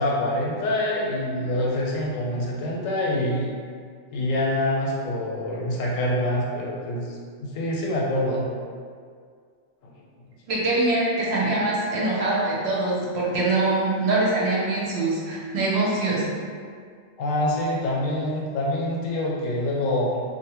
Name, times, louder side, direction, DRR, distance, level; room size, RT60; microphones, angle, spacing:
voice 1, 0.0-3.5 4.1-8.5 9.8-9.9 17.2-20.2, left 1 dB, 85° left, -3 dB, 1.0 m, -26 dB
voice 2, 10.5-16.3, right 2 dB, 65° right, -5 dB, 0.8 m, -23 dB
2.7 x 2.1 x 2.9 m, 2.1 s
omnidirectional pair, 1.3 m